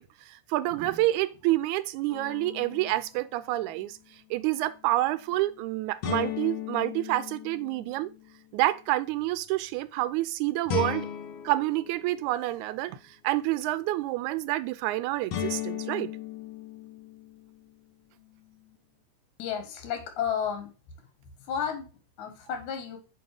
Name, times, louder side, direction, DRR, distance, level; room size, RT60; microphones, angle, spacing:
voice 1, 0.0-4.0 4.3-8.1 8.5-11.1 11.4-16.1, right 16 dB, 90° right, 2.0 m, -28 dB
sound 1, 2.1-3.0 6.0-8.2 10.7-12.8 15.3-17.5, left 11 dB, 65° left, 1.8 m, -36 dB
voice 2, 19.4-20.7 21.4-21.9 22.2-23.0, left 8 dB, 90° left, 2.6 m, -32 dB
8.9 x 3.1 x 4.8 m
omnidirectional pair, 3.3 m